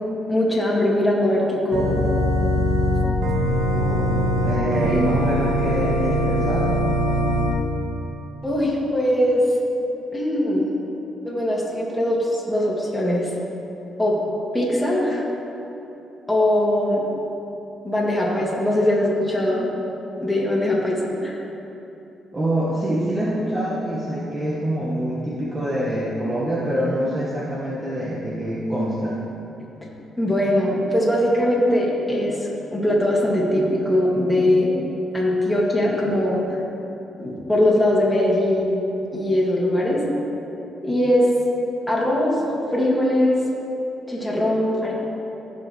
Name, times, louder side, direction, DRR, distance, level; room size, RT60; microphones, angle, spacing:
voice 1, 0.3-2.0 8.4-9.4 10.1-10.7 11.2-13.3 14.0-14.2 14.5-15.2 16.3-17.0 17.8-19.7 20.2-21.4 30.2-34.8 35.1-36.4 37.2-38.8 39.1-40.0 40.8-41.3 41.9-42.4 42.7-43.4 44.1-44.9, left 1 dB, 5° left, -6 dB, 2.0 m, -21 dB
Organ, 1.7-7.5, equal, 80° right, 1.2 m, -22 dB
voice 2, 3.7-6.8 22.3-29.2, right 1 dB, 25° right, -6 dB, 1.2 m, -25 dB
15.0 x 5.0 x 3.2 m, 2.9 s
cardioid pair, 90°, 0 cm